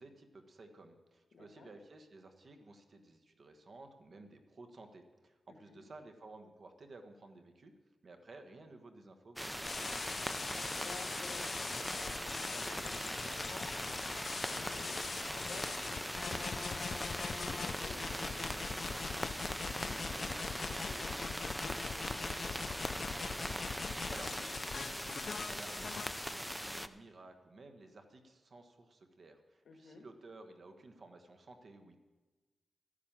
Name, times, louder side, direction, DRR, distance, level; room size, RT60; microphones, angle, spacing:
voice 1, 0.0-7.7 8.0-10.2 24.1-32.0, right 2 dB, 45° right, 6 dB, 1.3 m, -55 dB
voice 2, 1.3-1.7 5.7-5.8 10.8-23.3 29.6-30.1, left 4 dB, 80° left, 6 dB, 1.6 m, -55 dB
sound 1, 9.4-26.9, equal, ahead, 0.4 m, -40 dB
sound 2, 9.7-26.2, left 5 dB, 50° left, 0.5 m, -42 dB
13.0 x 10.0 x 7.4 m, 1.2 s
wide cardioid pair, 145°, 0 cm